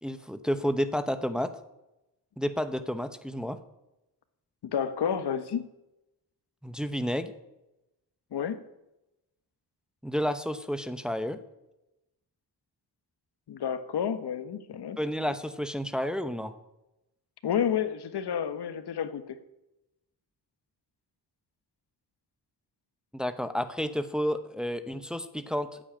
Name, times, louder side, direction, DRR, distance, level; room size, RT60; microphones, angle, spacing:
voice 1, 0.0-1.5 2.4-3.6 6.6-7.3 10.0-11.4 15.0-16.5 23.1-25.8, equal, ahead, 10 dB, 0.9 m, -31 dB
voice 2, 4.6-5.7 8.3-8.6 13.5-15.0 17.4-19.4, left 8 dB, 80° left, 11 dB, 1.4 m, -30 dB
15.5 x 9.0 x 8.8 m, 0.93 s
wide cardioid pair, 140°, 39 cm